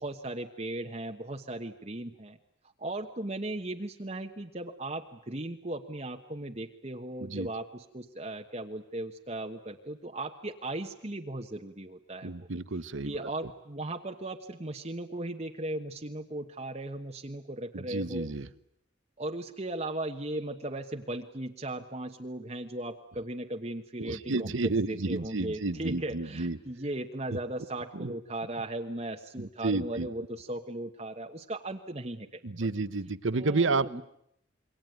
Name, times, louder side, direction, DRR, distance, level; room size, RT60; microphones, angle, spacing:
voice 1, 0.0-2.4 2.8-12.5 13.0-18.3 19.2-32.4 33.3-34.0, right 1 dB, 35° right, 3 dB, 1.2 m, -37 dB
voice 2, 12.2-13.3 17.7-18.5 24.0-26.6 27.3-27.4 27.9-28.2 29.4-30.1 32.4-34.0, right 3 dB, 85° right, 15 dB, 1.0 m, -31 dB
27.5 x 23.5 x 9.3 m, 0.74 s
head